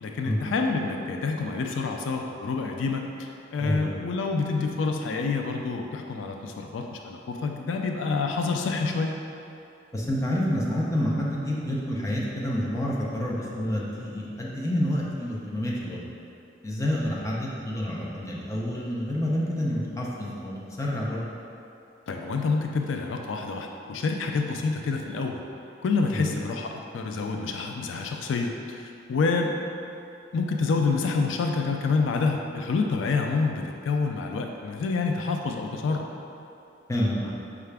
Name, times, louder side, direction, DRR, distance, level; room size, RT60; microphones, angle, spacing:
voice 1, 0.0-9.1 22.1-25.4 25.8-29.5 30.3-36.1, left 4 dB, 85° left, 3 dB, 0.3 m, -27 dB
voice 2, 3.6-4.0 9.9-16.0 16.6-21.2 26.1-26.3 36.9-37.3, equal, 15° left, -4 dB, 0.5 m, -28 dB
5.6 x 2.4 x 3.3 m, 2.6 s
head